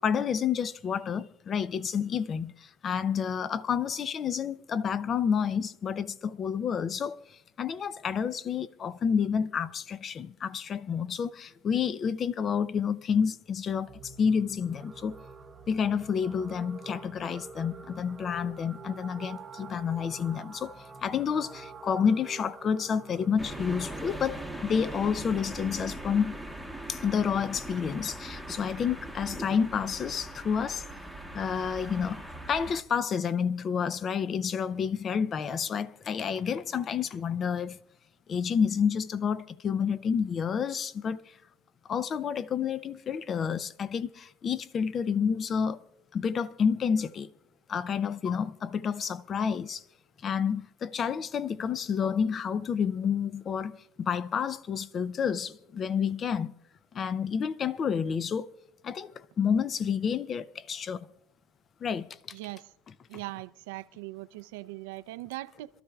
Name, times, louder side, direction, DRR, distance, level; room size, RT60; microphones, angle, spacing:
voice 1, 0.0-15.2 15.7-26.4 26.9-30.8 31.3-37.8 38.3-41.3 41.9-45.8 46.1-47.3 47.7-49.8 50.2-56.5 56.9-58.5 58.8-61.1 61.8-62.1, left 7 dB, 30° left, 0.5 m, -29 dB
sound 1, 13.9-30.2, right 4 dB, 20° right, 0.8 m, -48 dB
sound 2, 23.4-32.8, right 1 dB, 5° left, 1.1 m, -40 dB
voice 2, 62.3-62.7 63.1-65.7, right 18 dB, 75° right, 0.5 m, -40 dB
26.5 x 13.0 x 2.4 m
supercardioid pair, 120°, 0 cm